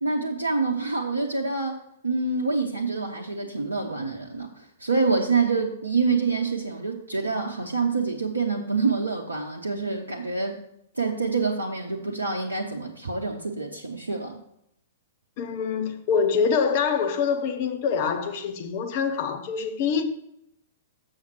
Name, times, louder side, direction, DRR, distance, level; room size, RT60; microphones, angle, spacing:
voice 1, 0.0-10.6 10.9-14.4, right 4 dB, 75° right, 0.7 m, -26 dB
voice 2, 15.4-20.0, left 6 dB, 40° left, 0.8 m, -25 dB
7.2 x 6.5 x 4.5 m
figure-of-eight pair, 105°, 0 cm